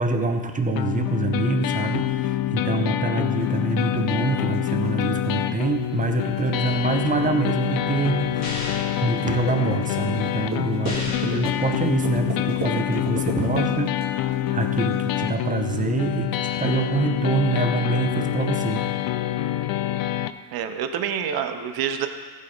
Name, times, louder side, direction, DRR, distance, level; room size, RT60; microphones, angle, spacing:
voice 1, 0.0-18.9, right 4 dB, 20° right, 5 dB, 0.8 m, -26 dB
sound 1, 0.8-20.3, left 13 dB, 55° left, 0.5 m, -26 dB
sound 2, 3.4-15.0, right 4 dB, 35° right, 2.5 m, -36 dB
sound 3, 8.4-9.0 10.9-11.5, left 2 dB, 35° left, 2.9 m, -33 dB
voice 2, 11.1-11.4 20.5-22.1, right 8 dB, 55° right, 8 dB, 0.9 m, -28 dB
14.5 x 5.5 x 3.9 m, 1.5 s
cardioid pair, 110°, 44 cm